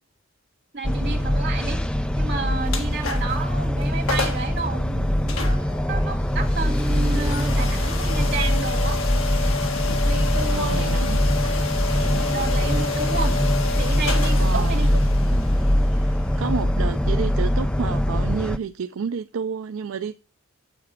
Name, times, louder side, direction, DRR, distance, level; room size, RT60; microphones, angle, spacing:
voice 1, 0.7-1.8 2.2-9.0 10.0-11.1 11.4-11.6 12.3-13.4 13.8-15.0 15.3-15.4, right 4 dB, 50° right, 2.4 m, -31 dB
sound 1, 0.8-18.6, equal, 5° left, 0.4 m, -22 dB
sound 2, 2.7-3.4 3.8-4.5 5.3-18.0, left 4 dB, 75° left, 1.8 m, -31 dB
voice 2, 10.5-11.2 14.4-14.9 16.0-20.2, right 6 dB, 75° right, 0.4 m, -30 dB
8.6 x 7.1 x 5.8 m
head